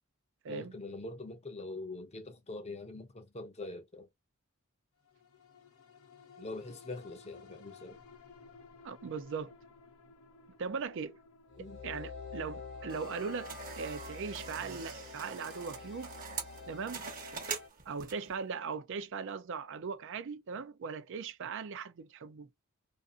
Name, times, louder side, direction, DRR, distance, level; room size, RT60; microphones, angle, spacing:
voice 1, 0.5-4.1 6.4-8.0 11.6-11.8, left 2 dB, 30° left, 0.6 m, -43 dB
sound 1, 5.0-19.7 20.1-20.2, left 4 dB, 75° left, 0.6 m, -59 dB
voice 2, 8.8-9.5 10.6-11.2 11.6-16.1 16.7-17.0 17.9-22.5, right 5 dB, 60° right, 0.4 m, -39 dB
sound 2, 11.5-17.7, left 4 dB, 50° left, 1.0 m, -47 dB
sound 3, 12.9-18.4, right 5 dB, 40° right, 0.9 m, -44 dB
2.5 x 2.4 x 2.4 m
head